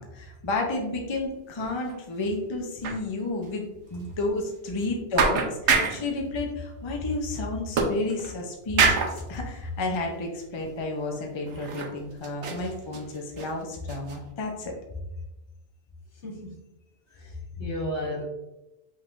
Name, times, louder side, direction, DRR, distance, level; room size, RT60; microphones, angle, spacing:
voice 1, 0.0-3.6 3.9-14.7, left 2 dB, 35° left, 1 dB, 0.5 m, -31 dB
sound 1, 1.6-2.0 2.2-2.3 2.8-3.0 3.4-3.5 4.0-4.1 4.8-4.9 5.2-6.1 7.8-8.4 8.8-9.2 9.9-10.1 10.6-10.7 11.5-12.0 12.2-13.5 13.9-14.2, right 5 dB, 85° right, 1.0 m, -26 dB
voice 2, 16.2-16.6 17.1-18.3, left 1 dB, 75° left, -3 dB, 1.6 m, -34 dB
5.3 x 3.3 x 2.5 m, 0.97 s
omnidirectional pair, 1.2 m